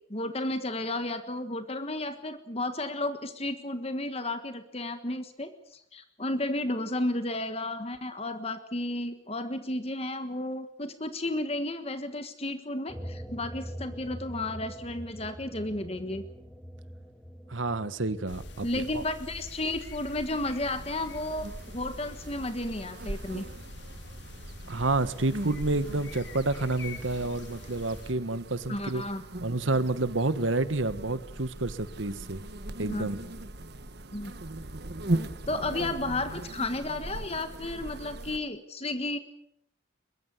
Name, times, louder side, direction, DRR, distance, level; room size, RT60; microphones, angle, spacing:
voice 1, 0.1-16.2 18.6-23.5 28.7-29.2 32.9-33.1 34.1-34.3 35.5-39.2, left 2 dB, 30° left, 9 dB, 1.4 m, -33 dB
sound 1, 12.9-19.8, equal, 5° left, 1.7 m, -44 dB
voice 2, 17.5-18.7 18.9-19.0 24.7-29.0 29.4-32.4 32.8-33.2, right 2 dB, 75° right, 13 dB, 1.5 m, -29 dB
sound 2, 18.2-28.1, left 2 dB, 60° left, 3.7 m, -44 dB
sound 3, 20.6-38.4, right 1 dB, 55° right, 1.4 m, -39 dB
22.5 x 22.0 x 8.1 m, 0.75 s
head